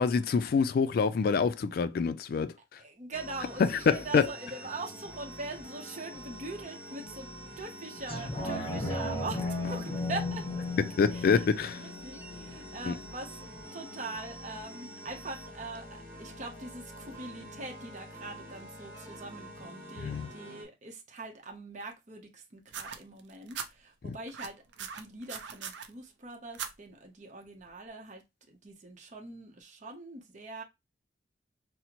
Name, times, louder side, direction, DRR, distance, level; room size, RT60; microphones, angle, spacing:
voice 1, 0.0-2.5 3.6-4.3 10.9-11.8 12.9-13.0 20.0-20.3 24.0-24.2, left 5 dB, 55° left, 0.3 m, -26 dB
voice 2, 2.8-7.3 7.6-9.4 9.7-10.7 11.1-11.5 11.8-13.4 13.7-28.2 28.5-30.6, right 2 dB, 45° right, 0.8 m, -42 dB
sound 1, 3.1-20.6, equal, 20° right, 1.5 m, -46 dB
sound 2, 8.1-13.1 13.6-13.7, left 2 dB, 30° left, 0.9 m, -35 dB
sound 3, 22.7-23.7 24.3-25.9 26.5-26.7 27.7-27.8, right 7 dB, 85° right, 0.5 m, -39 dB
4.1 x 2.0 x 2.9 m
head